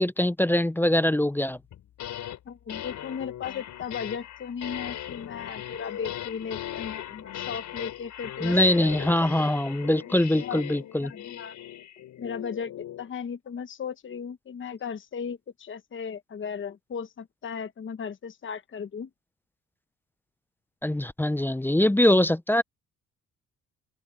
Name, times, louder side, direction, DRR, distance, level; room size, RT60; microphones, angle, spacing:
voice 1, 0.0-1.6 8.4-11.1 20.8-22.6, left 1 dB, 5° left, 0.7 m, -23 dB
sound 1, 1.7-2.4 2.7-13.1, left 11 dB, 75° left, 5.2 m, -38 dB
voice 2, 2.5-8.9 10.1-10.6 11.0-11.5 12.2-12.7 13.0-19.1, left 6 dB, 40° left, 1.1 m, -36 dB
open air
cardioid pair, 90°, 30 cm